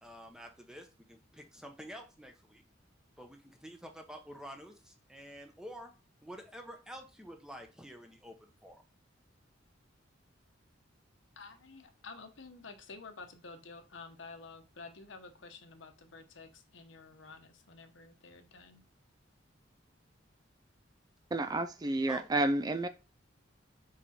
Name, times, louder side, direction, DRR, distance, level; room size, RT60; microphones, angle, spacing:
voice 1, 0.0-2.6 3.2-5.9 6.2-8.8 22.1-22.3, equal, 5° right, 1.0 m, -49 dB
voice 2, 11.4-18.8, left 4 dB, 75° left, 1.1 m, -50 dB
voice 3, 21.3-22.9, right 2 dB, 20° right, 0.4 m, -30 dB
5.2 x 4.9 x 4.3 m
head